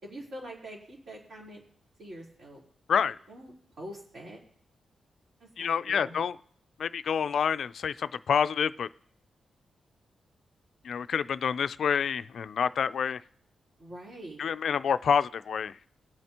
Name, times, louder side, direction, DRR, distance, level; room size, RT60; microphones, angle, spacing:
voice 1, 0.0-1.6 2.0-2.6 2.9-4.4 5.4-6.2 13.8-14.4, right 1 dB, 55° right, -3 dB, 3.9 m, -44 dB
voice 2, 5.6-6.4 6.8-8.9 10.8-13.2 14.4-15.7, left 7 dB, 65° left, 14 dB, 0.4 m, -28 dB
22.0 x 7.7 x 2.9 m, 0.62 s
wide cardioid pair, 140°, 0 cm